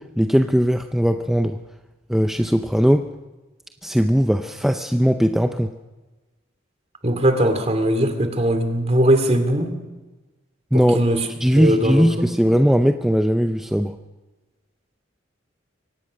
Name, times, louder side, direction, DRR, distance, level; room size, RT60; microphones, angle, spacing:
voice 1, 0.0-1.6 2.1-3.1 3.8-5.7 10.7-11.0 11.4-14.0, equal, ahead, 6 dB, 0.6 m, -19 dB
voice 2, 7.0-9.7 10.7-12.3, right 1 dB, 35° right, 7 dB, 2.5 m, -20 dB
23.5 x 18.0 x 6.4 m, 1.2 s
head